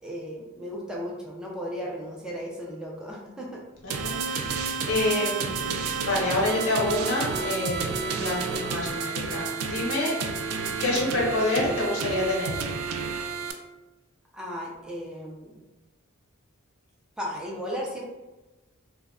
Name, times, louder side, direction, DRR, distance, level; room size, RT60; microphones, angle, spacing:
voice 1, 0.0-3.6 14.3-15.6 17.2-18.1, equal, 5° right, -3 dB, 0.4 m, -35 dB
sound 1, 3.9-13.5, right 5 dB, 80° right, 0.3 m, -30 dB
voice 2, 4.2-10.1 10.8-12.6, left 2 dB, 90° left, -2 dB, 0.8 m, -27 dB
2.2 x 2.0 x 3.5 m, 1.1 s
head